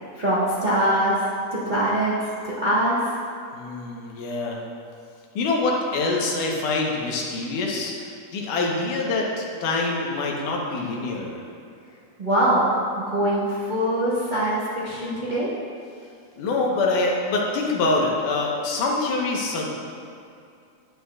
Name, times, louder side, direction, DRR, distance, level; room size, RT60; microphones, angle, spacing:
voice 1, 0.1-2.2 2.4-3.1 12.2-15.5, right 1 dB, 85° right, -9 dB, 0.4 m, -23 dB
voice 2, 3.5-4.6 5.4-11.4 16.4-19.7, left 3 dB, 90° left, -1 dB, 2.6 m, -25 dB
11.0 x 9.0 x 2.4 m, 2.5 s
omnidirectional pair, 3.5 m